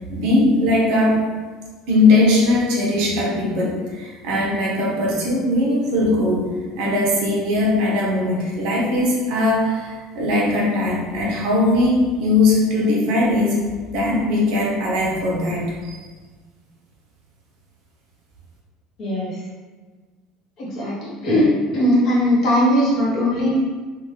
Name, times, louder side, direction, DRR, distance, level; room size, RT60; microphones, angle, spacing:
voice 1, 0.1-1.3 1.9-13.6 13.9-16.0, left 2 dB, 55° right, -3 dB, 0.7 m, -19 dB
voice 2, 19.0-19.4 20.6-23.6, left 1 dB, 35° left, -6 dB, 0.8 m, -19 dB
2.7 x 2.2 x 3.1 m, 1.4 s
cardioid pair, 180°, 0 cm